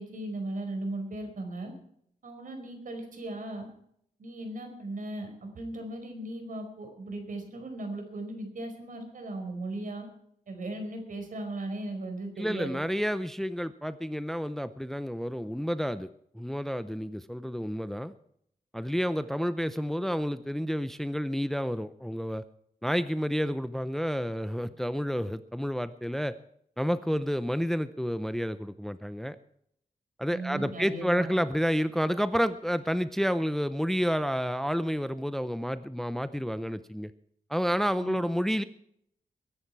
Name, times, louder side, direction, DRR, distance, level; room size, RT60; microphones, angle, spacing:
voice 1, 0.0-1.7 2.2-3.7 4.2-10.0 10.5-12.8 30.3-31.3 38.0-38.2, right 2 dB, 70° right, 5 dB, 4.9 m, -37 dB
voice 2, 12.4-16.1 16.3-18.1 18.7-22.4 22.8-26.4 26.8-29.4 30.2-37.1 37.5-38.6, equal, ahead, 12 dB, 0.6 m, -30 dB
21.5 x 11.0 x 4.7 m, 0.69 s
wide cardioid pair, 125°, 14 cm